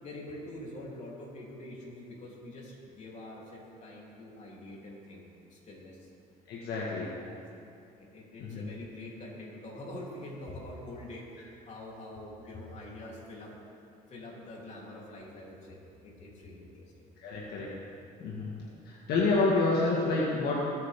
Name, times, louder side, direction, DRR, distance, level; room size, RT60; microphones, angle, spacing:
voice 1, 0.0-6.1 6.7-7.4 8.0-13.5 14.1-16.8 18.3-18.5, left 1 dB, 45° left, -4 dB, 3.7 m, -45 dB
voice 2, 6.5-7.1 8.4-8.7 17.2-17.7 18.2-18.5 18.9-20.6, left 3 dB, 75° left, -4 dB, 1.9 m, -28 dB
21.0 x 9.1 x 3.8 m, 2.6 s
cardioid pair, 110°, 17 cm